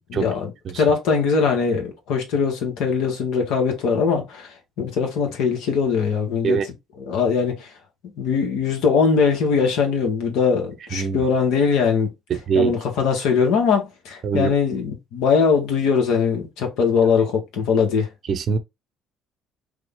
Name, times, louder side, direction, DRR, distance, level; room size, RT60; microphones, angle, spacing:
voice 1, 0.0-0.5 0.8-6.6 7.0-7.7 8.2-12.1 12.5-18.1, left 5 dB, 75° left, 1.2 m, -21 dB
voice 2, 10.9-11.2 12.3-12.7 14.2-14.5 18.3-18.6, right 6 dB, 50° right, 0.7 m, -22 dB
3.4 x 2.3 x 3.5 m
supercardioid pair, 75°, 0 cm